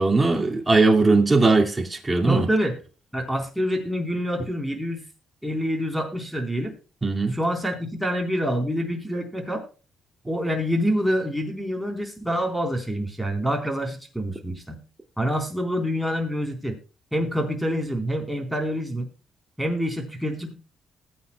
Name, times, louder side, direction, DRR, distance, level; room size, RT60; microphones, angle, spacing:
voice 1, 0.0-2.5 7.0-7.4, right 3 dB, 15° right, 2.3 m, -19 dB
voice 2, 2.3-2.8 3.1-5.1 5.4-6.8 7.3-9.7 10.3-14.8 15.2-16.8 17.1-19.1 19.6-20.5, equal, ahead, 3.8 m, -26 dB
20.0 x 8.8 x 2.3 m
cardioid pair, 90°, 0 cm